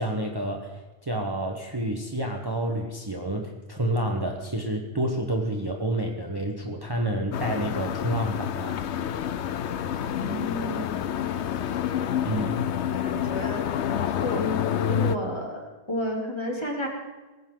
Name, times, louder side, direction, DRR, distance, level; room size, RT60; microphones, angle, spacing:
voice 1, 0.0-8.8 12.2-12.6, right 1 dB, 20° right, 1 dB, 1.3 m, -29 dB
sound 1, 7.3-15.2, left 9 dB, 80° left, 1.0 m, -28 dB
voice 2, 10.2-11.1 12.9-14.5 14.9-16.9, left 1 dB, 25° left, -1 dB, 3.2 m, -32 dB
19.0 x 15.5 x 3.9 m, 1.2 s
omnidirectional pair, 1.1 m